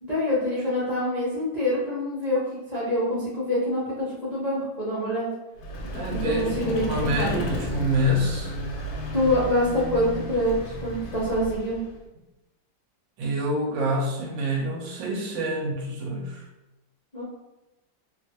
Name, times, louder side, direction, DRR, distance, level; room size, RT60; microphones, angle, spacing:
voice 1, 0.0-2.4 2.7-5.3 6.1-6.9 7.2-7.3 9.1-11.8 17.1-17.2, left 1 dB, 45° left, -10 dB, 0.5 m, -25 dB
Vehicle, 5.6-12.0, left 1 dB, 80° left, 1.3 m, -33 dB
voice 2, 5.8-8.5 13.2-16.5, equal, 80° right, 0 dB, 1.4 m, -27 dB
3.2 x 2.3 x 2.7 m, 1.0 s
omnidirectional pair, 2.1 m